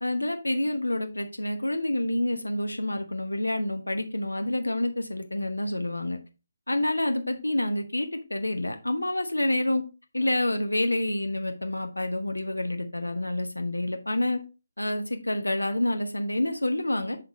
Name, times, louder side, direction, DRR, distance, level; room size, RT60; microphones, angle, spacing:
voice 1, 0.0-6.2 6.7-9.8 10.1-14.4 14.8-17.2, left 1 dB, 85° left, 6 dB, 1.0 m, -28 dB
6.7 x 3.7 x 4.1 m, 0.30 s
figure-of-eight pair, 150°, 0 cm